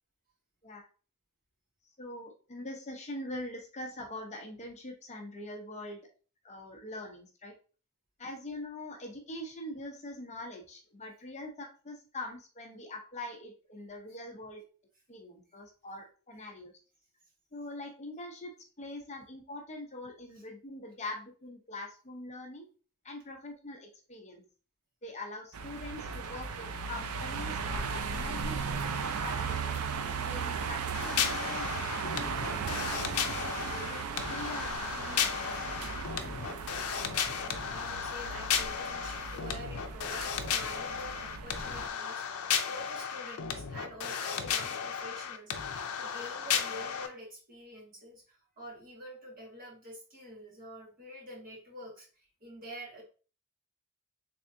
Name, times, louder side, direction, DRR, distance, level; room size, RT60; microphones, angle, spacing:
voice 1, 2.0-6.0 6.4-7.5 8.2-14.6 15.1-16.7 17.5-22.7 23.0-24.4 25.0-29.8 30.2-33.1 33.7-36.0, left 1 dB, 30° left, 2 dB, 0.7 m, -43 dB
sound 1, 25.5-41.9, right 5 dB, 75° right, 0.4 m, -37 dB
sound 2, 30.9-47.1, left 7 dB, 80° left, 0.5 m, -34 dB
voice 2, 37.3-52.1 52.4-53.0, equal, 40° right, -3 dB, 1.6 m, -47 dB
3.5 x 3.4 x 2.7 m, 0.37 s
head